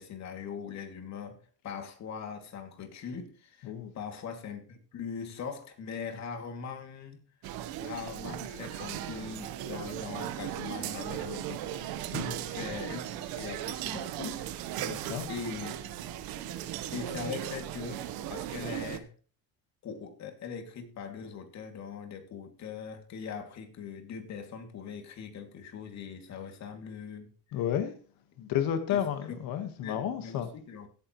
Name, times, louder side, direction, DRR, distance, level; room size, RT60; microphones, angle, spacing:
voice 1, 0.0-7.2 7.8-12.0 12.4-14.6 15.3-15.8 16.9-19.1 19.8-27.3 28.9-29.4 29.8-30.9, left 6 dB, 50° left, 2.6 m, -41 dB
sound 1, 7.4-19.0, right 11 dB, 80° right, 1.2 m, -37 dB
voice 2, 14.8-15.3 17.2-17.3 27.5-27.9 28.4-30.5, left 9 dB, 70° left, 1.6 m, -32 dB
16.5 x 9.4 x 3.1 m
cardioid pair, 135°, 35 cm